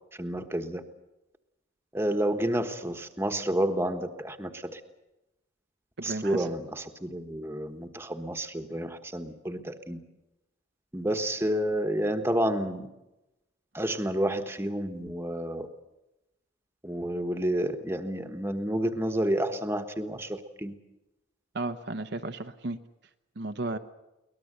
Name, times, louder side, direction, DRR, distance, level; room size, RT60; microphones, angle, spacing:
voice 1, 0.2-0.8 1.9-4.8 6.0-10.0 10.9-12.9 13.7-15.7 16.8-20.7, right 1 dB, 10° right, 7 dB, 1.3 m, -30 dB
voice 2, 6.0-6.5 21.5-22.8 23.4-23.8, right 2 dB, 55° right, 8 dB, 0.8 m, -34 dB
23.5 x 19.0 x 8.0 m, 0.98 s
head